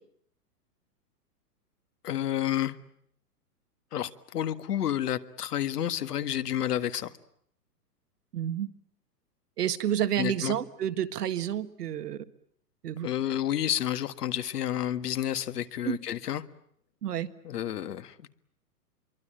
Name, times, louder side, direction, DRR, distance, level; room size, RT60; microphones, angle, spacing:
voice 1, 2.0-2.7 3.9-7.1 10.2-10.6 13.0-16.4 17.4-18.4, left 11 dB, 75° left, 1.8 m, -30 dB
voice 2, 8.3-8.7 9.6-12.2 12.8-13.1 15.8-16.0 17.0-17.3, right 10 dB, 75° right, 1.8 m, -29 dB
26.5 x 23.5 x 8.9 m
hypercardioid pair, 130°, 47 cm